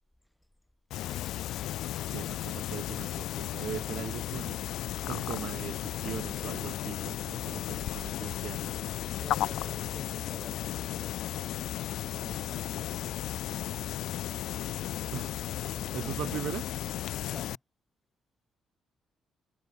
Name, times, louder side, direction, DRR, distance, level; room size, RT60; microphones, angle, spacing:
sound 1, 0.9-17.6, left 13 dB, 80° left, 0.9 m, -35 dB
voice 1, 2.1-4.6 5.0-8.7 15.1-15.4 15.9-16.6, right 11 dB, 75° right, 0.5 m, -39 dB
voice 2, 9.2-14.3 15.7-16.4 17.3-17.6, left 1 dB, 5° left, 4.4 m, -50 dB
cardioid pair, 90°, 0 cm